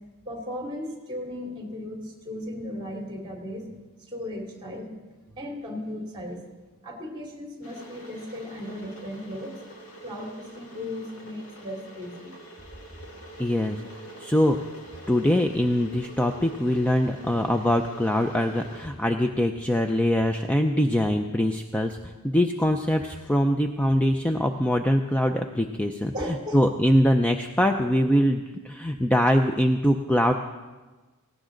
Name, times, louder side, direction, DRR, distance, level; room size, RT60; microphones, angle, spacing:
voice 1, 0.2-4.9 5.3-6.4 6.8-9.6 10.0-12.5 26.1-26.6, left 1 dB, 20° right, 0 dB, 2.8 m, -36 dB
Water / Boiling, 7.6-18.9, right 2 dB, 70° left, 2.3 m, -45 dB
voice 2, 13.4-13.8 14.2-14.6 15.1-26.1 26.5-30.3, equal, 5° left, 5 dB, 0.5 m, -23 dB
18.0 x 16.5 x 3.9 m, 1.3 s
head